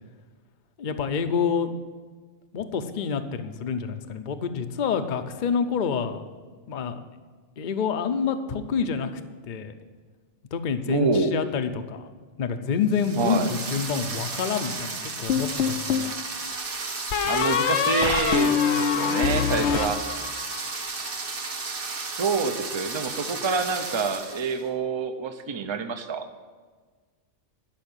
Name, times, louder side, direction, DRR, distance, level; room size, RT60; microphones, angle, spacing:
voice 1, 0.8-1.7 2.5-6.2 6.7-7.0 7.6-9.1 9.5-9.7 10.5-12.1 12.4-16.1, left 6 dB, 45° left, 8 dB, 0.7 m, -27 dB
voice 2, 10.9-11.3 13.2-13.5 17.2-20.0 22.2-26.3, right 4 dB, 30° right, 8 dB, 0.6 m, -27 dB
sound 1, 12.9-24.6, right 4 dB, 50° right, 1.2 m, -34 dB
sound 2, 15.3-16.2 17.1-20.6, left 7 dB, 70° left, 1.0 m, -24 dB
12.0 x 5.7 x 8.9 m, 1.5 s
omnidirectional pair, 1.2 m